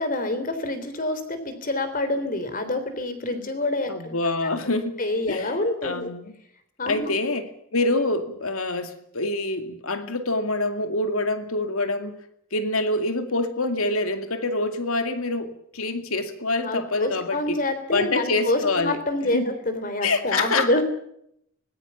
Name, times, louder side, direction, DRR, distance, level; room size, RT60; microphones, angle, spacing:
voice 1, 0.0-4.1 5.0-6.1 6.8-7.1 16.6-19.4 19.7-20.8, left 2 dB, 40° left, 3.5 m, -27 dB
voice 2, 3.9-4.9 5.3-5.5 5.8-6.2 6.9-12.2 12.5-17.6 17.9-19.0 19.3-19.5 20.0-20.8, left 2 dB, 75° left, 2.3 m, -26 dB
25.0 x 19.5 x 7.1 m
head